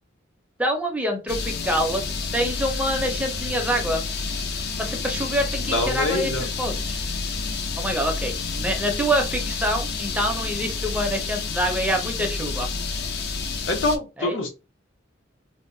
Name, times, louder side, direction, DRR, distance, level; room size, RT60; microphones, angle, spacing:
voice 1, 0.6-2.0 2.3-4.0 4.8-7.0 7.8-12.7 14.2-14.4, equal, 5° right, 3 dB, 0.5 m, -26 dB
sound 1, 1.3-14.0, left 4 dB, 55° left, 0.4 m, -29 dB
voice 2, 5.7-6.5 13.7-14.5, left 2 dB, 70° left, 3 dB, 0.8 m, -25 dB
2.7 x 2.1 x 2.5 m, 0.28 s
head